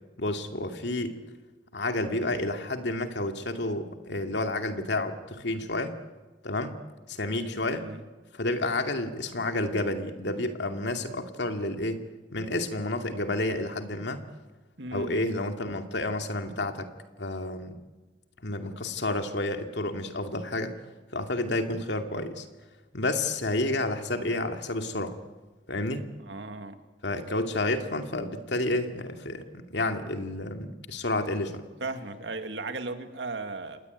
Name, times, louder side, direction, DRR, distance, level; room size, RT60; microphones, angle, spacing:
voice 1, 0.2-1.2 1.7-5.9 6.4-6.7 7.1-7.9 8.3-12.0 12.3-14.2 14.9-16.9 17.2-17.8 18.4-20.8 21.1-22.5 22.9-25.2 25.7-26.0 27.0-31.6, left 2 dB, 70° left, 6 dB, 2.5 m, -30 dB
voice 2, 7.7-8.0 14.8-15.5 26.2-26.8 31.8-33.8, right 3 dB, 70° right, 8 dB, 2.2 m, -36 dB
28.0 x 20.0 x 9.5 m, 1.2 s
head